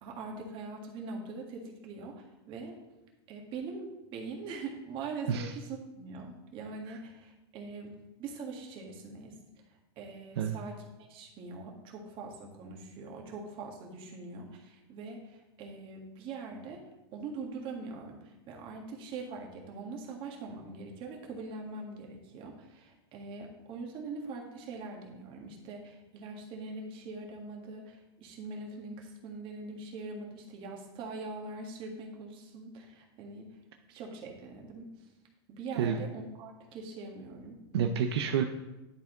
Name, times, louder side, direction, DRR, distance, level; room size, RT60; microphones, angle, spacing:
voice 1, 0.0-2.8 3.3-9.4 9.9-16.8 17.1-33.6 33.9-35.1 35.5-37.6, right 3 dB, 40° right, 0 dB, 1.7 m, -43 dB
voice 2, 37.7-38.4, right 7 dB, 75° right, 5 dB, 0.6 m, -29 dB
10.5 x 4.4 x 3.8 m, 1.0 s
supercardioid pair, 135°, 14 cm